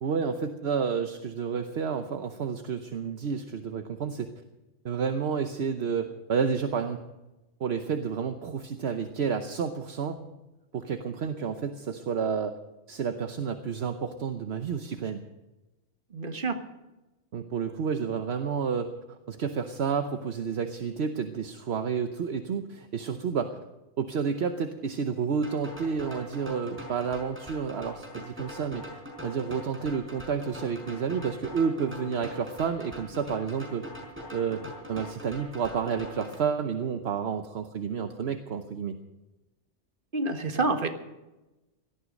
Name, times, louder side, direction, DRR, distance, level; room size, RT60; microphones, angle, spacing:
voice 1, 0.0-4.3 4.8-7.0 7.6-10.2 10.7-12.6 12.9-15.2 17.3-18.9 19.3-23.6 24.0-28.8 29.2-33.9 34.3-34.6 34.9-38.9, right 6 dB, 65° right, 7 dB, 1.2 m, -30 dB
voice 2, 16.1-16.6 40.1-40.9, right 3 dB, 50° right, 6 dB, 1.6 m, -28 dB
sound 1, 25.4-36.4, equal, 10° right, 4.8 m, -43 dB
17.5 x 13.0 x 5.2 m, 1.0 s
omnidirectional pair, 1.2 m